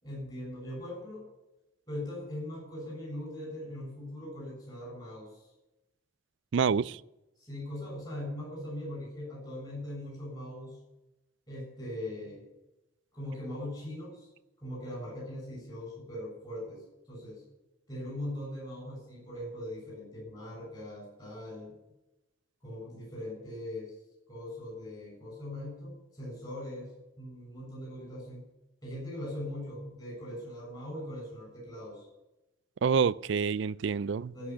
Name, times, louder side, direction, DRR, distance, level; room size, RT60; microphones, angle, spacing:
voice 1, 0.0-1.3 1.9-5.5 7.4-10.8 11.5-12.4 13.1-14.3 14.6-17.4 17.9-21.8 22.6-24.0 24.3-28.5 28.8-32.1 34.3-34.5, left 1 dB, 20° left, 6.9 m, -40 dB
voice 2, 6.5-7.0 32.8-34.3, right 6 dB, 60° right, 0.4 m, -27 dB
15.5 x 6.1 x 9.9 m
head